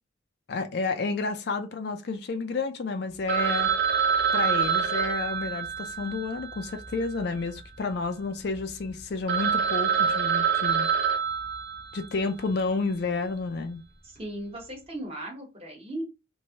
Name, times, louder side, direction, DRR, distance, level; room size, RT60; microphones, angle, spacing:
voice 1, 0.5-3.7 4.3-10.9 11.9-13.8, left 3 dB, 55° left, 0.4 m, -30 dB
Telephone, 3.3-7.6 7.9-8.0 8.5-8.6 9.0-9.1 9.3-12.2, right 7 dB, 55° right, 0.6 m, -26 dB
voice 2, 14.0-16.0, right 1 dB, 30° right, 1.0 m, -37 dB
3.0 x 2.6 x 2.8 m
head